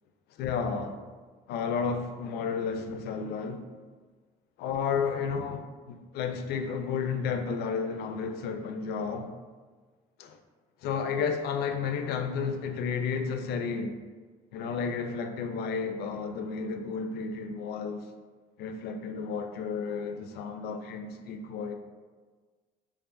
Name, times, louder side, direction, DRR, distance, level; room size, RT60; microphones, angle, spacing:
voice 1, 0.4-1.0 1.5-3.6 4.6-9.3 10.2-10.4 10.8-14.0 14.5-18.0 18.6-21.7, left 5 dB, 75° left, 0.4 m, -32 dB
4.5 x 2.4 x 2.5 m
cardioid pair, 110°, 17 cm